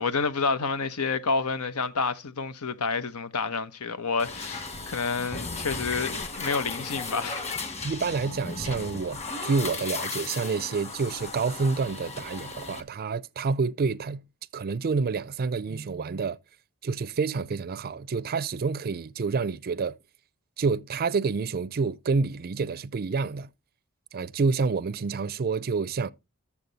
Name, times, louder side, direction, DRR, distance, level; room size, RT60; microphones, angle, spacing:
voice 1, 0.0-7.4, left 4 dB, 90° left, 0.9 m, -29 dB
sound 1, 4.2-12.8, left 3 dB, 30° left, 1.5 m, -36 dB
voice 2, 7.8-14.2 14.5-16.4 16.8-20.0 20.6-23.5 24.1-26.1, right 4 dB, 45° right, 0.4 m, -28 dB
12.0 x 7.2 x 4.0 m
head